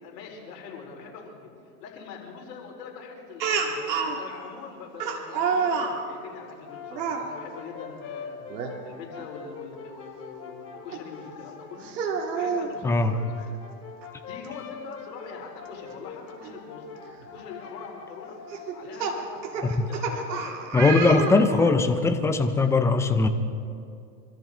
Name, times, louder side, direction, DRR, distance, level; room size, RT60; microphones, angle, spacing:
voice 1, 0.0-1.5 1.8-8.4 8.8-11.9 12.3-13.5 14.2-16.9 17.3-18.4 18.7-20.6, left 5 dB, 75° left, 0 dB, 4.5 m, -42 dB
Speech, 3.4-4.2 5.0-6.0 6.9-7.2 8.5-8.7 9.2-9.3 10.9-11.0 11.8-12.7 14.0-14.1 14.4-14.5 16.4-16.5 17.2-17.4 18.5-21.8, right 5 dB, 85° right, 2.4 m, -28 dB
Brass instrument, 6.4-11.9 12.9-18.7, left 5 dB, 30° left, 2.6 m, -44 dB
voice 2, 20.7-23.3, left 3 dB, 5° left, 8 dB, 0.4 m, -20 dB
25.5 x 14.0 x 3.8 m, 2.5 s
supercardioid pair, 130°, 50 cm